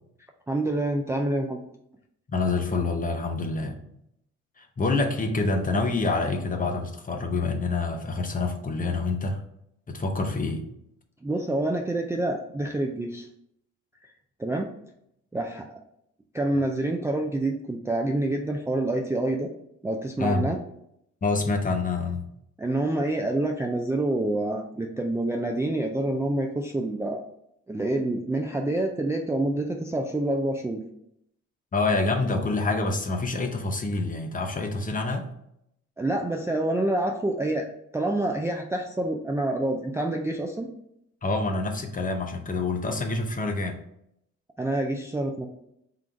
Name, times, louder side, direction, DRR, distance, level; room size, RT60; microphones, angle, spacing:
voice 1, 0.5-1.6 11.2-13.3 14.4-14.7 15.3-15.8 16.3-19.5 19.8-20.6 22.6-27.2 27.7-30.8 36.0-40.7 44.6-45.5, right 1 dB, 10° right, 1 dB, 0.3 m, -27 dB
voice 2, 2.3-3.8 4.6-9.4 9.9-10.7 20.2-20.5 21.2-22.3 31.7-35.3 41.2-43.8, left 3 dB, 25° left, 5 dB, 0.7 m, -27 dB
3.9 x 2.4 x 4.4 m, 0.76 s
cardioid pair, 90°, 30 cm